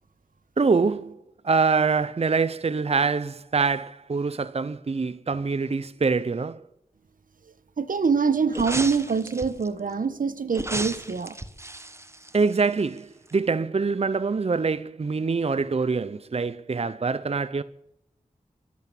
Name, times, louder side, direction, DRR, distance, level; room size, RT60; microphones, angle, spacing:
voice 1, 0.6-1.2 1.4-6.6 12.3-17.6, right 4 dB, 50° right, 0.6 m, -24 dB
voice 2, 7.8-11.4, right 5 dB, 80° right, 1.1 m, -24 dB
sound 1, 8.5-9.7 10.5-13.0 13.3-13.4, right 1 dB, 20° right, 1.3 m, -34 dB
24.5 x 8.3 x 6.9 m
wide cardioid pair, 55°, 14 cm